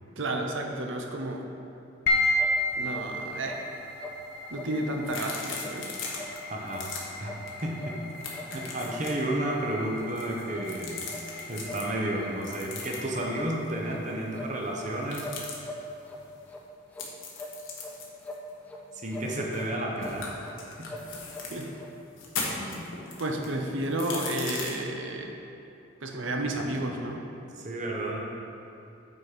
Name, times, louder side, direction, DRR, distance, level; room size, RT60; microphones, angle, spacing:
voice 1, 0.2-1.4 2.7-3.6 4.5-5.9 21.5-21.7 23.2-25.3 26.0-27.2, right 1 dB, 75° right, 2 dB, 0.8 m, -31 dB
sound 1, 2.1-16.5, left 1 dB, 60° left, 0.8 m, -35 dB
sound 2, 2.4-2.5 2.9-3.1 3.4-3.6 4.0-4.2 4.5-4.7 5.0-5.3 5.6-5.8 6.1-6.3 6.7-6.8 7.2-7.4 7.8-7.9 8.3-8.5 8.9-9.0 9.4-9.6 10.0-10.1 10.5-10.7 11.1-11.2 11.6-11.8 12.2-12.3 12.8-12.9 13.3-13.5 13.9-14.0 14.3-14.9 15.2-16.2 16.5-16.6 16.9-17.1 17.3-17.9 18.2-18.8 19.1-19.3 19.5-19.7 20.0-20.2 20.4-20.6 20.9-21.5 21.7-21.9, left 2 dB, 5° left, 0.6 m, -42 dB
sound 3, 5.0-6.4 6.7-7.0 7.5-7.6 7.9-9.2 10.0-11.8 12.4-13.2 15.0-15.5 17.0-19.7 20.0-21.7 22.1-24.7, left 4 dB, 80° left, 1.2 m, -38 dB
voice 2, 6.5-6.9 7.2-7.3 7.6-8.0 8.5-11.0 11.5-15.3 18.9-20.3 20.8-20.9 22.5-22.9 23.4-23.9 26.3-26.9 27.6-28.2, right 1 dB, 35° right, -1 dB, 0.9 m, -32 dB
8.6 x 4.4 x 5.0 m, 2.7 s
head